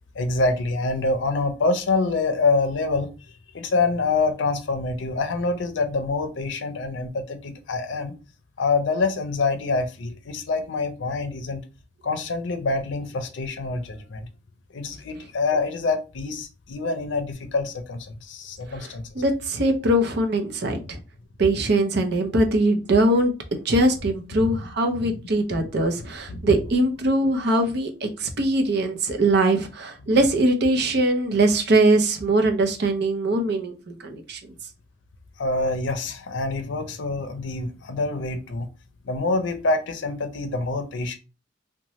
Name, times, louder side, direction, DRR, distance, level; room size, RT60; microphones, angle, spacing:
voice 1, 0.1-3.1 3.5-8.1 8.6-11.6 12.0-14.3 14.7-19.1 24.4-24.7 25.0-25.2 25.5-25.7 26.0-26.5 35.4-38.7 39.0-41.2, left 3 dB, 80° left, 0.5 m, -26 dB
voice 2, 19.2-21.0 21.4-34.4, right 1 dB, 65° right, 0.6 m, -22 dB
2.8 x 2.2 x 3.0 m
head